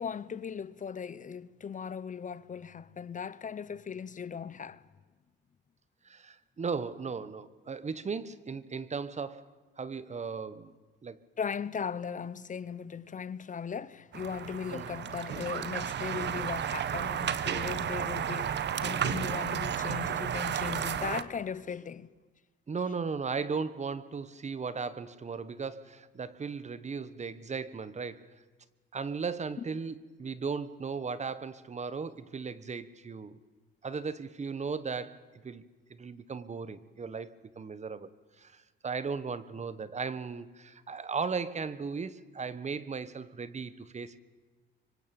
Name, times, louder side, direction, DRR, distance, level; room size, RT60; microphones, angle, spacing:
voice 1, 0.0-4.8 11.4-22.1, left 7 dB, 40° left, 0.9 m, -38 dB
voice 2, 6.0-9.5 9.8-10.7 11.0-11.2 14.7-14.9 22.7-28.4 28.9-33.4 33.8-35.6 35.9-38.1 38.4-44.2, right 5 dB, 35° right, 1.4 m, -36 dB
sound 1, 14.1-21.2, right 9 dB, 60° right, 1.3 m, -32 dB
25.0 x 24.5 x 8.9 m
cardioid pair, 90°, 20 cm